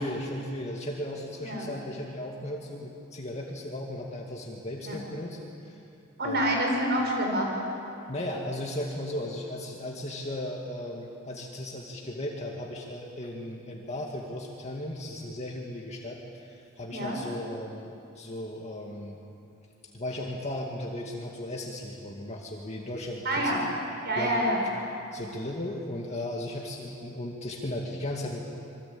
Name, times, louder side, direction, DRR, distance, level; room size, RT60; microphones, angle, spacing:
voice 1, 0.0-5.8 6.2-6.5 8.1-19.2 19.9-23.6 24.2-24.4 25.1-28.4, left 1 dB, 30° left, -1 dB, 2.2 m, -36 dB
voice 2, 1.4-1.7 4.9-5.0 6.2-7.6 16.9-17.2 23.3-23.6 24.0-24.6, right 1 dB, 50° right, 0 dB, 5.2 m, -27 dB
27.0 x 23.5 x 8.9 m, 2.8 s
head